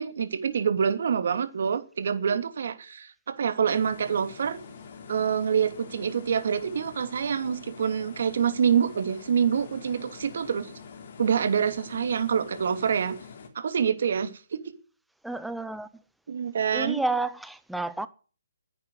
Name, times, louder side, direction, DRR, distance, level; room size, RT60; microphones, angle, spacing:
voice 1, 0.0-4.6 5.1-10.7 11.2-13.1 13.5-14.7 16.3-17.0, right 7 dB, 55° right, 2.8 m, -26 dB
sound 1, 3.7-13.5, left 6 dB, 45° left, 3.3 m, -45 dB
voice 2, 15.2-15.9 16.7-18.1, right 2 dB, ahead, 0.8 m, -30 dB
10.5 x 9.2 x 9.7 m
hypercardioid pair, 160°, 0 cm